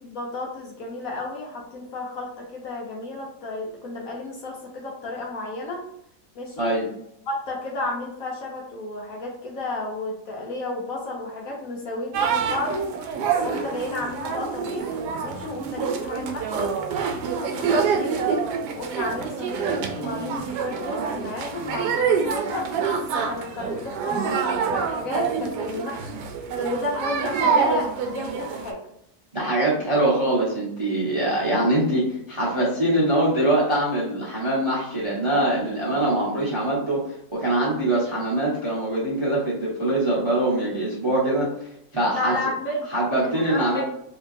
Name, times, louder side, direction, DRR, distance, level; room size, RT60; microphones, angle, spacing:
voice 1, 0.0-5.8 6.3-6.8 7.3-12.9 13.4-16.8 17.3-18.3 18.7-26.1 26.6-28.8 42.1-42.9 43.2-43.8, left 2 dB, 60° left, -2 dB, 1.1 m, -32 dB
sound 1, 12.1-28.7, right 6 dB, 75° right, 1.1 m, -26 dB
voice 2, 29.3-37.0 37.3-41.5 41.9-42.3 42.9-43.8, right 1 dB, 25° right, -6 dB, 0.7 m, -23 dB
3.5 x 3.0 x 2.6 m, 0.76 s
omnidirectional pair, 1.9 m